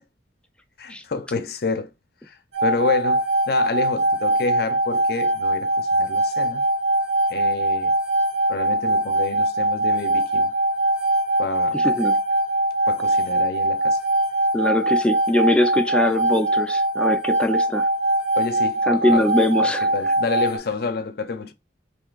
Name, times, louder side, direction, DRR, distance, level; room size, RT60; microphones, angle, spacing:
voice 1, 0.8-1.9 2.2-6.6 7.3-7.9 8.5-10.5 11.4-11.8 12.9-14.0 18.4-19.3 19.6-21.5, left 4 dB, 60° left, 0.5 m, -29 dB
sound 1, 2.5-20.6, right 1 dB, 80° right, 1.2 m, -22 dB
voice 2, 11.7-12.1 14.5-17.9 18.9-19.9, left 1 dB, 5° left, 0.3 m, -22 dB
3.2 x 2.7 x 3.8 m
head